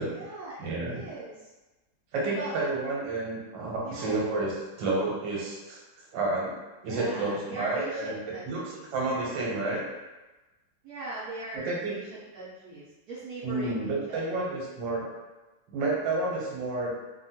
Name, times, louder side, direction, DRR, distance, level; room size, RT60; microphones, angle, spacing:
voice 1, 0.0-1.5 2.3-2.5 3.8-4.2 6.8-8.9 10.8-14.5, right 2 dB, 65° right, -9 dB, 1.1 m, -40 dB
voice 2, 0.6-1.1 2.1-4.5 4.8-5.8 6.1-8.2 8.4-8.6 8.9-9.9 11.5-11.9 13.4-15.1 15.7-16.9, right 2 dB, 85° right, -4 dB, 1.5 m, -30 dB
3.4 x 2.2 x 2.8 m, 1.1 s
omnidirectional pair, 2.0 m